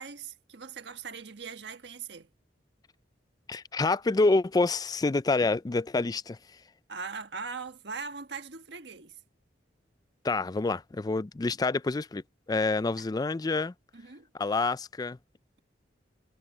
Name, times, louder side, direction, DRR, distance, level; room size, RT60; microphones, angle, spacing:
voice 1, 0.0-2.3 6.9-9.2 13.0-13.1 13.9-14.3, right 5 dB, 70° right, 1.4 m, -40 dB
voice 2, 3.5-6.4 10.2-12.2 12.5-13.7 14.4-15.2, left 3 dB, 20° left, 0.4 m, -27 dB
head